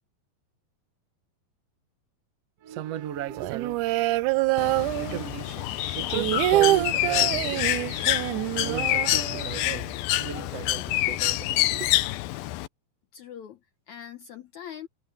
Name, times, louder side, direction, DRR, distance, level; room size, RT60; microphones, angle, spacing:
voice 1, 2.6-3.8 4.9-7.8 8.6-11.9, right 11 dB, 65° right, 1.6 m, -36 dB
sound 1, 3.3-5.5 5.8-9.8 10.1-10.2 10.4-10.9, right 16 dB, 85° right, 1.8 m, -26 dB
Bird, 4.6-12.7, left 16 dB, 85° left, 2.6 m, -27 dB
voice 2, 13.1-14.9, left 9 dB, 65° left, 2.0 m, -42 dB
omnidirectional pair, 4.1 m